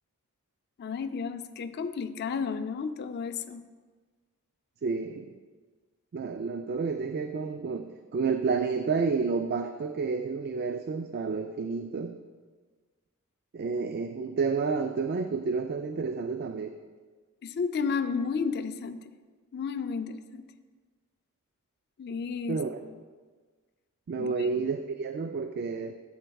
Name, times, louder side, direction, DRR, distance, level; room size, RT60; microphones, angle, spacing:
voice 1, 0.8-3.7 17.4-19.1 19.5-20.5 22.0-22.6 22.9-23.0 24.2-24.5, left 5 dB, 50° left, 10 dB, 0.4 m, -32 dB
voice 2, 4.8-5.3 6.1-12.1 13.5-16.8 22.5-22.8 24.1-25.9, right 4 dB, 45° right, 7 dB, 0.3 m, -30 dB
11.0 x 7.8 x 2.3 m, 1.4 s
head